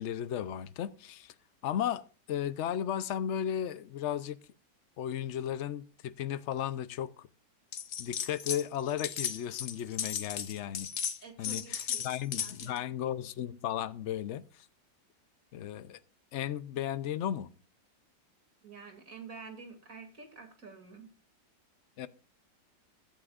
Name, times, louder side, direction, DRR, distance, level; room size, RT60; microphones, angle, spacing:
voice 1, 0.0-1.3 1.6-4.4 5.0-7.3 8.0-10.9 11.4-14.7 15.5-16.0 16.3-17.5 22.0-22.1, left 10 dB, 85° left, 0.6 m, -35 dB
sound 1, 7.7-8.6 8.9-12.8, left 8 dB, 50° left, 1.1 m, -36 dB
voice 2, 11.2-12.9 18.6-21.1, right 4 dB, 45° right, 2.9 m, -49 dB
15.5 x 11.5 x 2.4 m
omnidirectional pair, 2.0 m